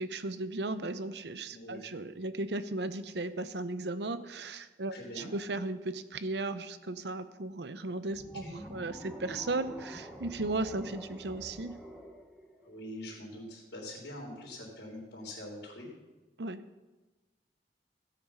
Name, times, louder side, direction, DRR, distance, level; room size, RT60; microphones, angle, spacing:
voice 1, 0.0-8.4 8.7-11.8 16.4-16.6, right 2 dB, 75° right, 12 dB, 0.8 m, -36 dB
voice 2, 4.9-5.3 8.2-8.6 12.6-15.9, left 1 dB, 80° left, -6 dB, 3.7 m, -44 dB
sound 1, 8.1-13.3, equal, ahead, 1.1 m, -47 dB
16.0 x 8.6 x 5.6 m, 1.2 s
head